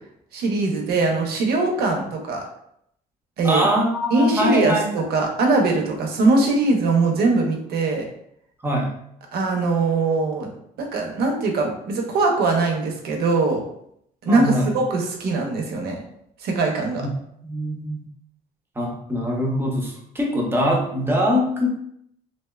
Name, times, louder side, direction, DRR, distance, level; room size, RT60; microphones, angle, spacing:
voice 1, 0.3-2.4 3.4-3.7 4.1-8.1 9.3-10.5 10.8-13.6 14.2-16.0 16.4-17.0, right 3 dB, 70° right, 2 dB, 0.6 m, -21 dB
voice 2, 3.4-4.9 8.6-8.9 14.3-14.8 17.0-17.1 17.4-18.1 18.8-21.7, equal, 15° right, -1 dB, 0.6 m, -22 dB
2.6 x 2.1 x 2.2 m, 0.71 s
cardioid pair, 110°, 17 cm